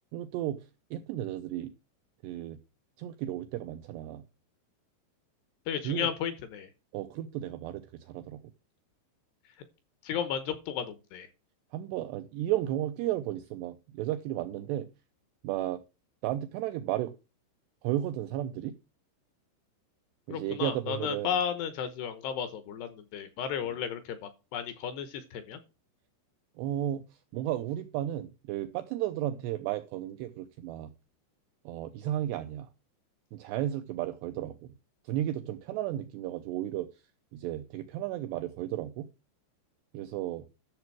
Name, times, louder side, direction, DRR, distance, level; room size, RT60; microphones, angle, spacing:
voice 1, 0.1-1.7 2.2-2.6 3.0-4.2 5.8-6.1 6.9-8.4 11.7-14.9 15.4-15.8 16.2-17.1 17.8-18.8 20.3-21.3 26.6-30.9 31.7-32.7 33.3-34.7 35.0-36.9 37.3-39.1 39.9-40.5, right 13 dB, 85° right, 2.4 m, -34 dB
voice 2, 5.7-6.7 10.0-11.3 20.3-25.6, left 8 dB, 75° left, 2.6 m, -34 dB
12.0 x 7.1 x 4.6 m
omnidirectional pair, 5.7 m